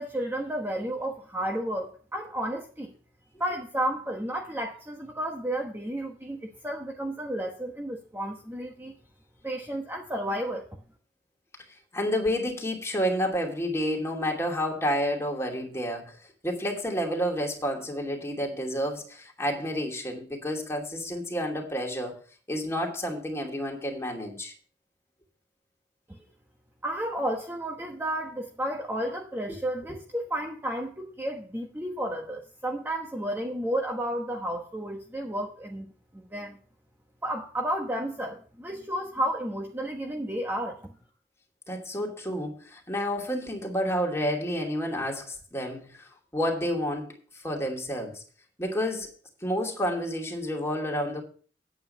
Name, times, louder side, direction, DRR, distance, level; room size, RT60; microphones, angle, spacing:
voice 1, 0.0-2.9 3.4-8.9 9.4-10.7 26.1-26.2 26.8-36.6 37.2-40.9, right 1 dB, 15° right, 1.1 m, -32 dB
voice 2, 11.9-16.2 16.4-22.2 22.5-24.5 41.7-47.2 47.4-48.2 48.6-49.1 49.4-51.2, equal, 15° left, 2.6 m, -30 dB
9.6 x 8.6 x 5.5 m
head